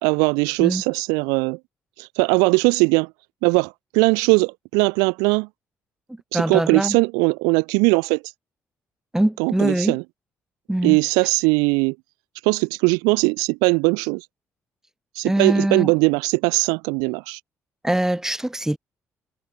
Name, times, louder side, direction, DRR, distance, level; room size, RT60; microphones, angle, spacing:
voice 1, 0.0-1.6 2.0-3.1 3.4-5.5 6.3-8.2 9.4-10.0 10.8-12.0 12.4-14.2 15.2-17.4, right 32 dB, 85° right, 0.4 m, -20 dB
voice 2, 6.3-7.0 9.1-10.0 10.7-11.0 15.2-15.9 17.8-18.8, right 1 dB, 10° right, 1.2 m, -22 dB
hypercardioid pair, 55°, 6 cm